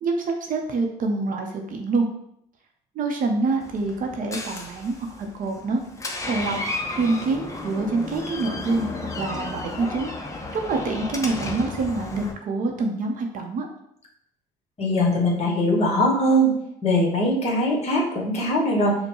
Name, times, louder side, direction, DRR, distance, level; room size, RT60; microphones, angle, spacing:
voice 1, 0.0-2.1 2.9-5.8 6.3-6.6 7.0-10.1 10.5-13.7, right 3 dB, 55° right, 3 dB, 0.7 m, -26 dB
Door, 3.6-12.3, left 2 dB, 20° left, 0.5 m, -33 dB
voice 2, 14.8-16.5 16.8-18.9, equal, 40° left, -3 dB, 1.2 m, -21 dB
5.3 x 2.1 x 3.0 m, 0.73 s
cardioid pair, 110°, 17 cm